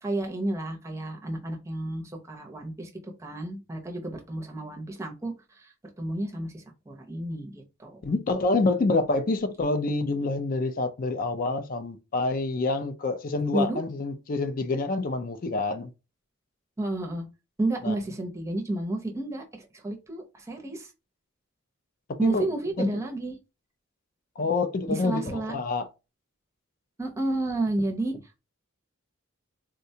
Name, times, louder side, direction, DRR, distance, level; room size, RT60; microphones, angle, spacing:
voice 1, 0.0-8.0 13.5-13.8 16.8-17.3 17.6-20.9 22.2-23.4 24.9-25.5 27.0-28.4, right 2 dB, 15° right, 0.6 m, -31 dB
voice 2, 8.0-15.9 17.8-17.9 22.1-22.5 22.8-23.0 24.4-25.9, left 3 dB, 40° left, 0.4 m, -27 dB
3.6 x 2.2 x 2.7 m
head